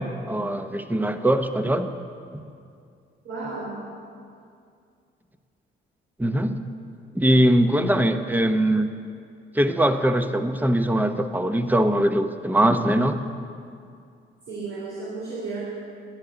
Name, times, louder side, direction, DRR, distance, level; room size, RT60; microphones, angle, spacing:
voice 1, 0.0-1.9 2.3-2.4 6.2-6.6 7.1-8.9 9.5-13.2, right 1 dB, 10° right, 8 dB, 0.9 m, -21 dB
voice 2, 3.2-3.8 14.5-15.6, right 3 dB, 75° right, -5 dB, 3.2 m, -33 dB
11.0 x 10.5 x 8.0 m, 2.4 s
cardioid pair, 80°, 21 cm